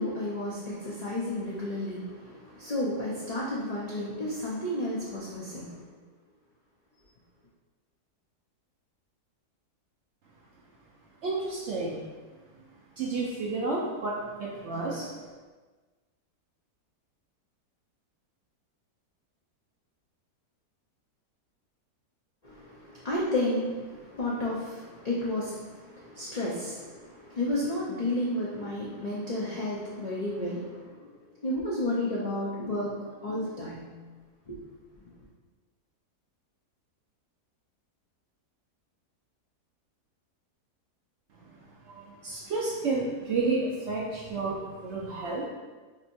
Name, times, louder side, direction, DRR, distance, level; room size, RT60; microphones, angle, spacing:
voice 1, 0.0-5.8 22.4-31.1 31.4-33.9 34.5-34.6 35.0-35.1, left 1 dB, 75° left, -8 dB, 0.3 m, -32 dB
voice 2, 11.2-12.0 13.0-15.3 41.9-45.4, right 3 dB, 70° right, -3 dB, 0.6 m, -31 dB
5.3 x 2.8 x 2.6 m, 1.3 s
omnidirectional pair, 1.7 m